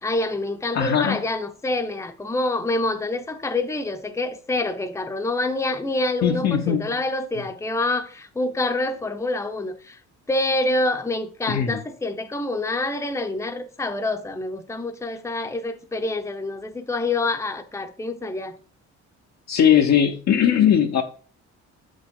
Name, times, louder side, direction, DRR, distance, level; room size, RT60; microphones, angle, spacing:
voice 1, 0.0-10.0 10.3-18.6, left 2 dB, 10° left, 0.8 m, -26 dB
voice 2, 0.7-1.2 6.2-6.9 11.5-11.8 19.5-21.0, left 9 dB, 60° left, 0.9 m, -19 dB
7.4 x 5.2 x 3.7 m
cardioid pair, 90°, 30 cm